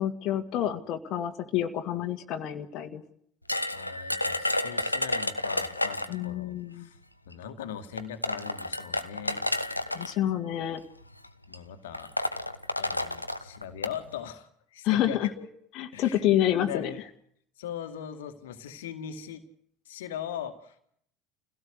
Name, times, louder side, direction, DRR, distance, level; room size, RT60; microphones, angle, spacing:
voice 1, 0.0-3.0 6.1-6.9 9.9-10.8 14.8-15.3 15.8-16.9, left 12 dB, 50° left, 5 dB, 2.0 m, -28 dB
sound 1, 3.5-6.2 7.3-7.4 8.0-10.1 11.0-11.3 11.5-11.6 11.9-14.0, left 1 dB, 90° left, 1.1 m, -30 dB
voice 2, 3.7-7.0 7.3-9.5 11.5-12.1 12.8-15.5 15.9-16.3 16.5-17.0 17.6-19.4 19.9-20.8, left 9 dB, 70° left, 9 dB, 2.1 m, -40 dB
28.5 x 17.0 x 8.2 m, 0.69 s
figure-of-eight pair, 65°, 0 cm